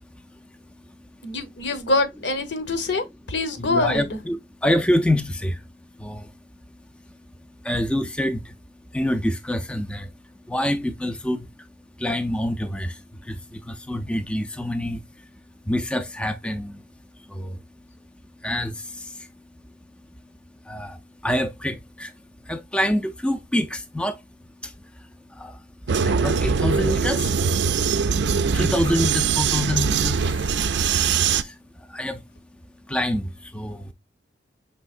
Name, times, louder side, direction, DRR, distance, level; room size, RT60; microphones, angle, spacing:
voice 1, 0.0-1.1 3.6-6.4 7.1-7.2 7.6-8.6 8.9-10.1 10.4-11.7 12.0-15.3 15.6-16.8 17.2-17.6 18.4-19.3 20.6-22.1 22.4-24.2 24.6-27.7 28.2-28.3 28.5-30.5 31.1-32.2 32.9-33.9, left 1 dB, 5° left, 0.3 m, -27 dB
voice 2, 1.2-4.2, left 2 dB, 70° left, 0.9 m, -25 dB
Vehicle, 25.9-31.4, right 6 dB, 65° right, 0.4 m, -22 dB
5.4 x 3.6 x 2.4 m
head